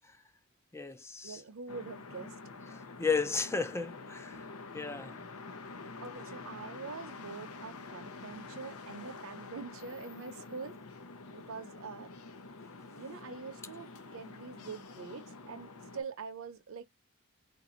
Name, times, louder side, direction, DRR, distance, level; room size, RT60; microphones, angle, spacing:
voice 1, 0.7-1.4 2.7-4.4 4.7-5.1, left 5 dB, 10° left, 0.4 m, -34 dB
voice 2, 1.2-2.4 4.3-4.5 6.0-10.8 11.3-12.1 13.0-16.8, right 4 dB, 65° right, 0.7 m, -44 dB
sound 1, 1.7-16.0, left 3 dB, 80° left, 0.7 m, -47 dB
4.0 x 2.6 x 2.5 m
head